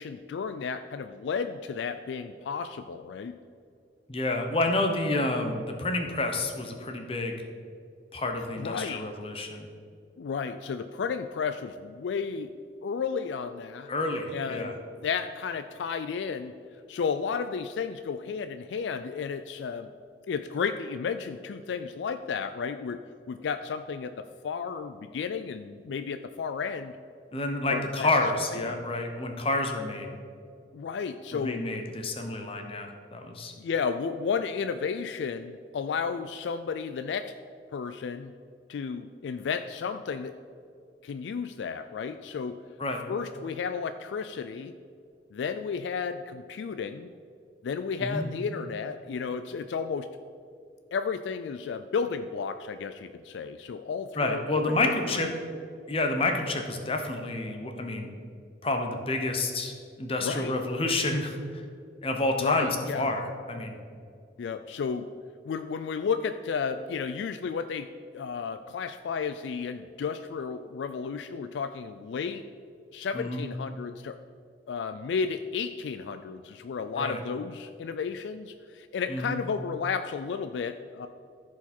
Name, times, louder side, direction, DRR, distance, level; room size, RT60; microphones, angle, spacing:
voice 1, 0.0-3.3 8.6-9.1 10.2-12.5 12.8-13.9 14.3-16.6 16.9-19.9 20.3-26.9 27.7-28.1 28.5-28.8 30.7-31.6 33.6-37.3 37.7-38.3 38.7-40.4 41.0-42.6 43.1-44.8 45.3-47.1 47.6-50.1 50.9-55.3 60.2-60.5 62.4-63.1 64.4-65.1 65.5-72.4 72.9-74.2 74.7-81.1, left 6 dB, 80° left, 10 dB, 0.3 m, -33 dB
voice 2, 4.1-7.4 8.1-9.7 13.9-14.8 27.3-30.1 31.3-33.5 42.8-43.0 48.0-48.3 54.1-55.3 55.9-58.1 58.6-59.7 60.0-61.6 62.0-62.7 62.9-63.8 73.1-73.5 77.0-77.2 79.1-79.4, left 2 dB, 30° left, 4 dB, 0.9 m, -29 dB
14.5 x 4.8 x 4.3 m, 2.4 s
head